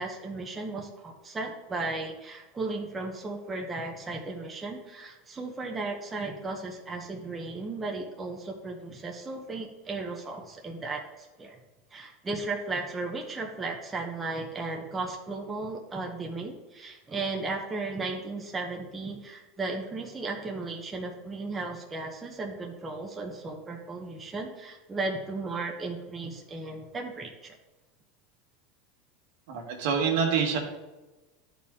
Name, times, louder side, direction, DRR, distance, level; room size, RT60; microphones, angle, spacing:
voice 1, 0.0-11.6 11.9-27.6, right 3 dB, 15° right, 1 dB, 0.9 m, -35 dB
voice 2, 29.5-30.6, right 6 dB, 70° right, 1 dB, 1.7 m, -26 dB
11.5 x 4.3 x 3.6 m, 1.1 s
supercardioid pair, 140°, 0 cm